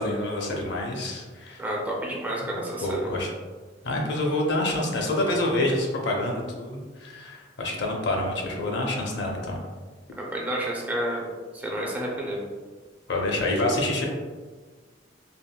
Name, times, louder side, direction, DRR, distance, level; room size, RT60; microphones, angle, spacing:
voice 1, 0.0-1.6 2.8-3.3 3.8-9.6 13.1-14.1, left 1 dB, 65° left, 0 dB, 0.5 m, -27 dB
voice 2, 1.6-3.1 10.3-12.5, right 1 dB, 10° right, -3 dB, 0.4 m, -30 dB
3.5 x 2.2 x 2.2 m, 1.4 s
head